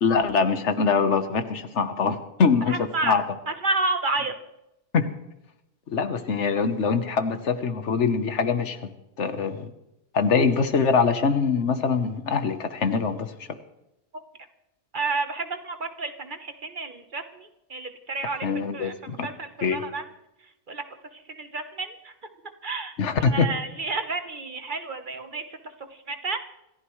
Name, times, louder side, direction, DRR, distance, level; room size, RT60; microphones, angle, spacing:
voice 1, 0.0-3.2 4.9-5.1 5.9-8.9 9.2-9.7 10.1-13.3 18.4-19.3 19.6-19.8 23.0-23.5, left 5 dB, 75° left, 9 dB, 1.4 m, -23 dB
voice 2, 2.7-4.3 14.9-20.0 20.7-20.8 21.1-22.1 22.6-22.9 23.3-25.4 25.9-26.4, right 3 dB, 45° right, 7 dB, 1.3 m, -31 dB
26.5 x 15.0 x 3.2 m, 0.90 s
omnidirectional pair, 1.2 m